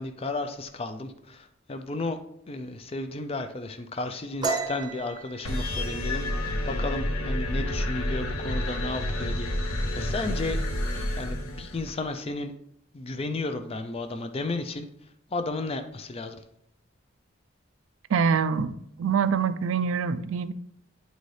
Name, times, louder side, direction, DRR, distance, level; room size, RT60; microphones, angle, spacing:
voice 1, 0.0-2.2 2.5-6.3 6.7-10.6 11.2-12.5 12.9-14.9 15.3-16.4, left 2 dB, 25° left, 8 dB, 0.4 m, -33 dB
sound 1, 4.4-7.9 8.2-8.5 8.9-9.4 9.7-10.4, right 4 dB, 20° right, 0.8 m, -34 dB
sound 2, 5.4-12.0, left 1 dB, 75° left, 0.9 m, -29 dB
voice 2, 18.1-18.7 19.0-20.5, right 6 dB, 70° right, 12 dB, 0.4 m, -24 dB
9.0 x 4.0 x 3.2 m, 0.76 s
head